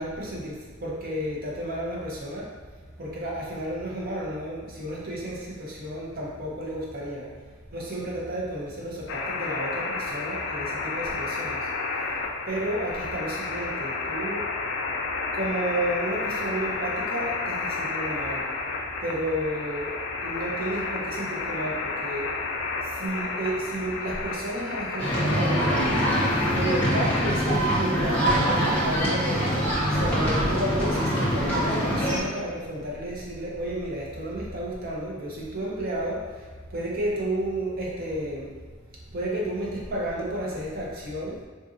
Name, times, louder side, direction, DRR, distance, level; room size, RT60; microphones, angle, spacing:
voice 1, 0.0-2.5 3.0-7.3 7.7-14.5 15.3-18.5 19.0-19.9 20.2-22.3 22.8-25.9 26.5-29.6 29.9-38.5 39.1-41.4, right 1 dB, 45° right, -4 dB, 0.6 m, -32 dB
sound 1, 9.1-27.3, left 3 dB, 60° left, 0.3 m, -31 dB
sound 2, 25.0-32.2, equal, 5° left, 0.6 m, -24 dB
3.7 x 2.6 x 2.4 m, 1.5 s
head